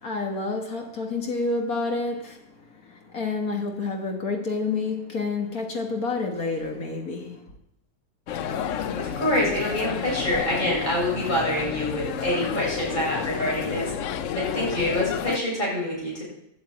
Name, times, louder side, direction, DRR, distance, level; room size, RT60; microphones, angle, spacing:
voice 1, 0.0-2.4 2.8-7.4, left 3 dB, 55° left, 1.9 m, -29 dB
sound 1, 8.3-15.4, left 8 dB, 70° left, 0.7 m, -30 dB
voice 2, 9.0-16.2, left 1 dB, 25° left, 6.7 m, -26 dB
11.0 x 7.9 x 8.5 m
omnidirectional pair, 1.9 m